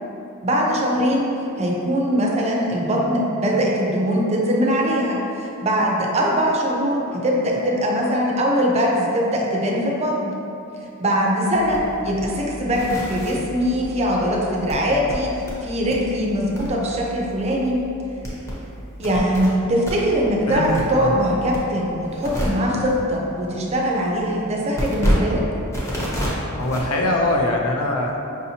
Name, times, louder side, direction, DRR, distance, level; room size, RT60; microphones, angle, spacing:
voice 1, 0.4-1.3 1.6-10.4 11.0-17.8 19.0-25.4, equal, 30° right, -2 dB, 0.5 m, -21 dB
sound 1, 11.5-19.5 19.8-27.6, equal, 15° left, 0.7 m, -30 dB
voice 2, 20.5-21.2 26.6-28.2, left 1 dB, 70° left, 1 dB, 0.5 m, -22 dB
5.0 x 2.7 x 2.7 m, 2.7 s
head